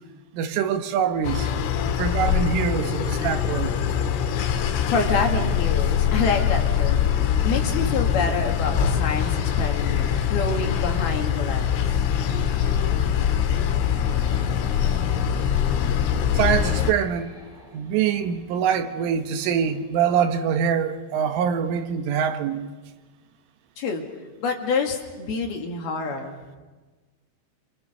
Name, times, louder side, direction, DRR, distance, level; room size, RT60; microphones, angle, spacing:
voice 1, 0.3-1.5 1.9-3.8 16.3-17.3 17.7-22.7, right 7 dB, 85° right, 3.9 m, -24 dB
sound 1, 1.2-16.9, left 8 dB, 85° left, 4.0 m, -23 dB
sound 2, 1.4-19.8, left 1 dB, ahead, 6.0 m, -46 dB
voice 2, 4.9-7.1 7.4-11.6 23.8-24.0 24.4-26.4, left 4 dB, 60° left, 3.8 m, -27 dB
28.0 x 26.5 x 6.8 m
omnidirectional pair, 5.6 m